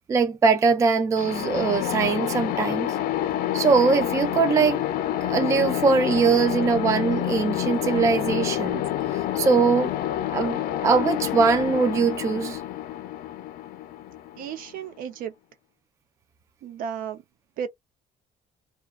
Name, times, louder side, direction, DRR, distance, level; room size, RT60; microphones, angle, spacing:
voice 1, 0.1-2.9 3.5-4.8 5.2-8.8 9.4-9.9 10.3-12.6, right 5 dB, 20° right, 0.3 m, -22 dB
sound 1, 1.2-14.8, left 12 dB, 70° left, 0.5 m, -28 dB
voice 2, 14.4-15.3 16.6-17.2 17.6-17.7, right 8 dB, 65° right, 0.6 m, -33 dB
2.3 x 2.3 x 2.3 m
cardioid pair, 170°, 15 cm